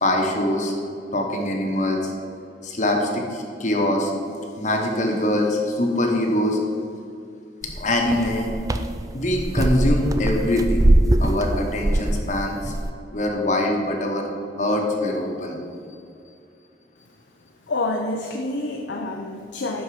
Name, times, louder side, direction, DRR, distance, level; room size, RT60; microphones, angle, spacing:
voice 1, 0.0-0.7 1.1-2.1 2.6-4.1 4.6-6.6 7.7-8.5 9.1-10.9 11.2-12.7 13.1-14.3 14.6-15.6, left 1 dB, 40° left, 1 dB, 1.0 m, -23 dB
sound 1, 7.6-12.9, right 1 dB, 20° right, 0.3 m, -22 dB
voice 2, 17.7-19.8, left 2 dB, 75° left, 2 dB, 0.6 m, -27 dB
11.5 x 4.6 x 4.8 m, 2.5 s
head